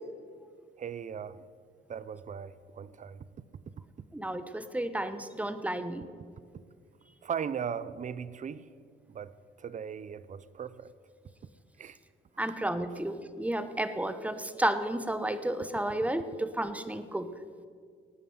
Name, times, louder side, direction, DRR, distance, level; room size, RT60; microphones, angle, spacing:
voice 1, 0.8-1.4 1.9-3.3 7.2-8.7 9.1-10.9 11.8-12.0, right 7 dB, 40° right, 0.7 m, -38 dB
voice 2, 4.1-6.1 12.4-17.3, right 1 dB, 5° right, 1.1 m, -32 dB
19.0 x 9.2 x 7.9 m
cardioid pair, 90°, 20 cm